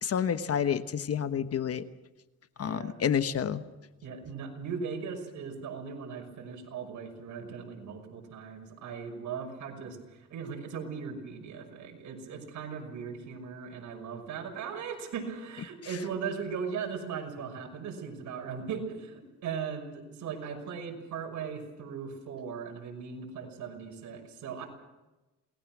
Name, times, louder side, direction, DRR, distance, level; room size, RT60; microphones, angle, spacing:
voice 1, 0.0-1.8 2.6-3.6, left 8 dB, 50° left, 11 dB, 1.2 m, -29 dB
voice 2, 2.6-3.0 4.0-24.6, right 6 dB, 75° right, 2 dB, 6.0 m, -38 dB
28.0 x 19.5 x 6.2 m, 1.1 s
cardioid pair, 90°, 30 cm